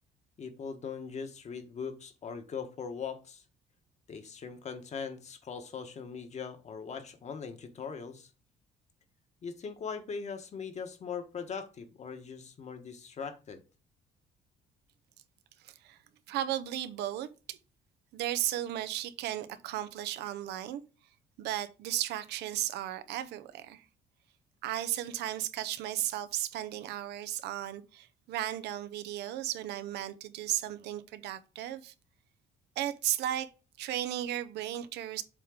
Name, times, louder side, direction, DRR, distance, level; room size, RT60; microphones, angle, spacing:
voice 1, 0.4-3.4 4.1-8.3 9.4-13.6, left 6 dB, 40° left, 1.4 m, -40 dB
voice 2, 15.6-16.0 16.3-17.6 18.1-20.8 21.4-23.8 24.6-31.9 32.8-33.5 33.8-35.2, right 12 dB, 80° right, 0.8 m, -35 dB
7.6 x 3.7 x 4.9 m
cardioid pair, 110°, 17 cm